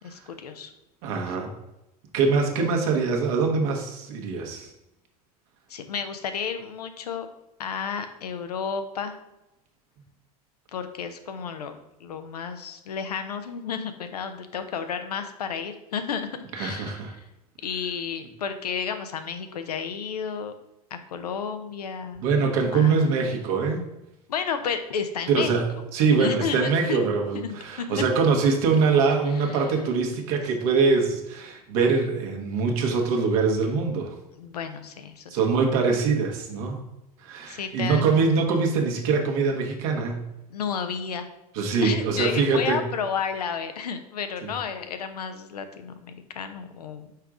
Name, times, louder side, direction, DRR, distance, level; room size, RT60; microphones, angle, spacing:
voice 1, 0.0-0.7 1.3-1.4 5.7-7.3 7.6-9.2 10.7-11.7 12.0-16.3 16.5-17.2 17.6-20.5 20.9-23.2 24.3-25.6 26.2-27.0 27.3-28.0 29.5-29.7 34.4-35.4 37.5-38.1 40.5-41.3 41.8-47.1, left 6 dB, 85° left, 8 dB, 0.7 m, -32 dB
voice 2, 1.0-1.5 2.1-4.7 16.5-17.1 22.2-23.9 25.3-34.2 35.3-36.8 37.2-40.2 41.5-42.8 44.4-44.5, right 4 dB, 65° right, 2 dB, 1.3 m, -23 dB
5.7 x 4.7 x 3.7 m, 0.91 s
hypercardioid pair, 90°, 20 cm